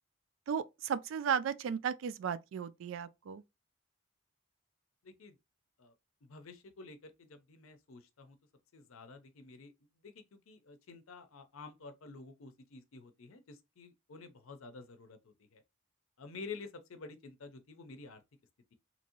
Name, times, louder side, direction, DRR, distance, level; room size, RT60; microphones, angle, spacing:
voice 1, 0.5-3.4, right 7 dB, 70° right, 0.3 m, -35 dB
voice 2, 5.0-5.4 5.8-5.9 6.2-8.4 8.7-9.7 10.0-15.6 16.2-18.2, left 4 dB, 90° left, 0.6 m, -50 dB
2.9 x 2.6 x 2.8 m
head